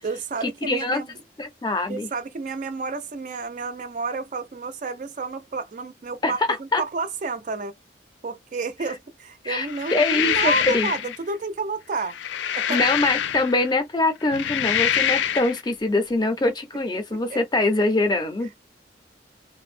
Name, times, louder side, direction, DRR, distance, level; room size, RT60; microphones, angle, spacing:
voice 1, 0.0-1.2 1.9-7.7 8.2-12.2 12.5-12.9 17.3-17.4, right 4 dB, 45° right, 0.4 m, -30 dB
voice 2, 0.7-1.0 1.4-2.1 6.2-6.3 6.7-6.8 9.4-10.9 12.7-18.5, left 2 dB, 25° left, 0.5 m, -23 dB
sound 1, 9.7-11.2 12.0-13.7 14.2-15.6, left 9 dB, 80° left, 0.3 m, -25 dB
2.5 x 2.0 x 2.4 m
head